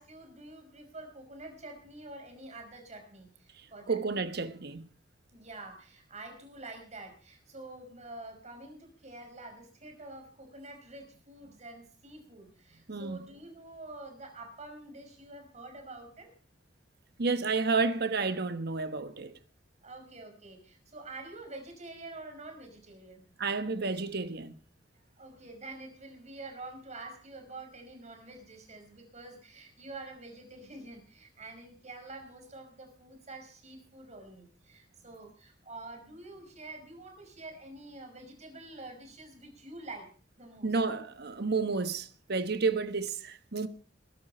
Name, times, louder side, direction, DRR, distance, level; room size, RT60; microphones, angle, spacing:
voice 1, 0.0-4.0 5.3-16.3 19.8-23.2 25.2-40.1 40.4-40.7, right 2 dB, 40° right, 5.4 m, -47 dB
voice 2, 3.9-4.9 12.9-13.2 17.2-19.3 23.4-24.5 40.6-43.7, right 4 dB, 60° right, 1.2 m, -31 dB
21.5 x 11.5 x 4.4 m
head